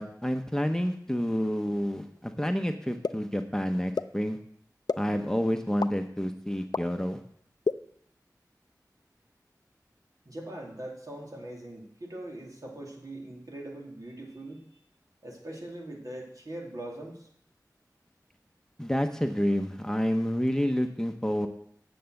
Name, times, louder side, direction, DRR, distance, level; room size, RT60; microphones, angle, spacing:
voice 1, 0.0-4.4 5.0-7.2 18.8-21.5, equal, 10° left, 5 dB, 0.9 m, -29 dB
sound 1, 3.0-3.1 4.0-4.1 4.9-5.0 5.8-5.9 6.7-6.8 7.6-7.7, left 4 dB, 75° left, 0.4 m, -26 dB
voice 2, 10.3-14.6 15.2-17.3, right 1 dB, 60° right, -1 dB, 2.7 m, -41 dB
9.3 x 7.0 x 7.7 m, 0.65 s
wide cardioid pair, 65°, 7 cm